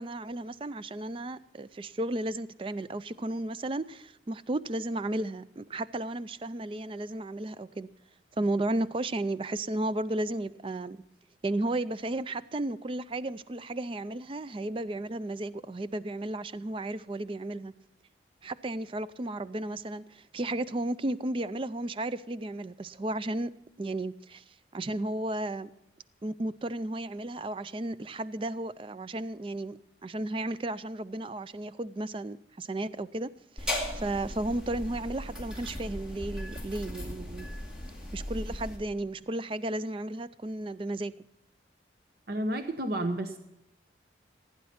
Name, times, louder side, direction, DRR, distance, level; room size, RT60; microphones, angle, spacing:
voice 1, 0.0-7.9 8.4-11.0 11.4-17.7 18.4-23.5 23.8-24.4 24.7-25.7 26.2-33.3 33.6-37.5 38.1-41.1, right 1 dB, 30° right, 0.4 m, -34 dB
sound 1, 33.6-38.8, left 1 dB, 5° right, 2.2 m, -37 dB
voice 2, 42.3-43.4, right 1 dB, 55° right, 0.9 m, -31 dB
16.0 x 9.6 x 5.7 m
head